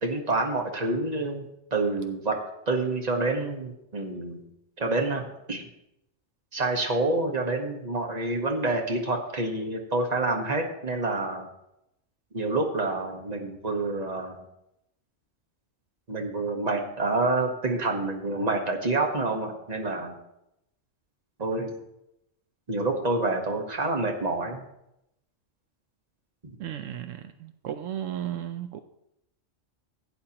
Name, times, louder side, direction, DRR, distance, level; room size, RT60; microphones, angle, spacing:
voice 1, 0.0-2.3 2.7-4.4 4.8-5.7 6.5-11.5 12.3-14.4 16.1-20.2 21.4-21.7 22.7-24.6 26.4-26.6, right 2 dB, 30° right, 2 dB, 1.5 m, -28 dB
voice 2, 26.6-28.8, right 11 dB, 80° right, 9 dB, 0.9 m, -34 dB
16.0 x 9.1 x 2.9 m, 0.84 s
omnidirectional pair, 1.3 m